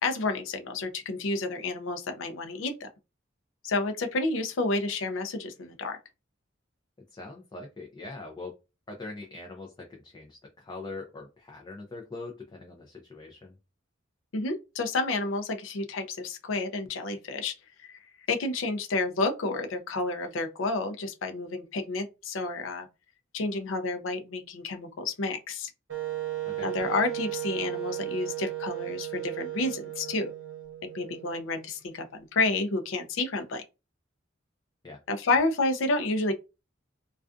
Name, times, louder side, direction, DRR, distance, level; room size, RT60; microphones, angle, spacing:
voice 1, 0.0-2.9 3.6-6.0 14.3-17.5 17.8-18.0 18.3-22.9 23.3-25.7 26.6-30.3 30.9-33.6 35.1-36.3, left 3 dB, 85° left, 0.5 m, -30 dB
voice 2, 7.1-8.6 8.9-13.6 26.5-26.7 34.8-35.0, left 3 dB, 20° left, 0.4 m, -42 dB
Wind instrument woodwind instrument, 25.9-31.7, right 15 dB, 70° right, 0.7 m, -35 dB
2.4 x 2.3 x 2.4 m
head